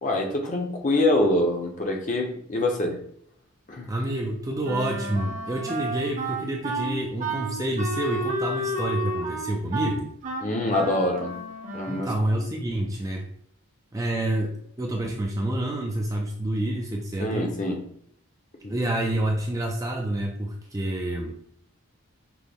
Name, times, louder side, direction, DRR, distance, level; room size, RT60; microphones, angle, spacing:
voice 1, 0.0-3.0 3.7-3.9 10.4-11.3 11.7-12.1 17.2-17.8 18.6-18.7, left 1 dB, 35° left, 2 dB, 0.7 m, -25 dB
voice 2, 3.9-10.1 11.9-13.3 13.9-17.5 18.7-21.3, right 1 dB, 15° right, 1 dB, 0.4 m, -28 dB
Wind instrument woodwind instrument, 4.6-12.2, right 2 dB, 35° right, 0.8 m, -31 dB
6.0 x 2.0 x 3.4 m, 0.65 s
head